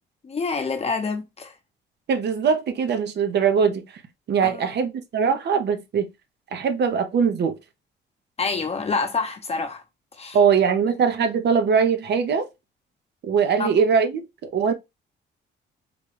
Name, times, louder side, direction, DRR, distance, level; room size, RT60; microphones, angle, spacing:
voice 1, 0.2-1.5 4.4-4.7 8.4-9.8 10.1-10.4 13.6-13.7, left 4 dB, 30° left, 0.8 m, -27 dB
voice 2, 2.1-3.8 4.3-6.1 6.5-7.6 10.3-12.5 13.2-14.7, right 6 dB, 60° right, 0.8 m, -21 dB
3.9 x 2.3 x 3.2 m
cardioid pair, 90°, 20 cm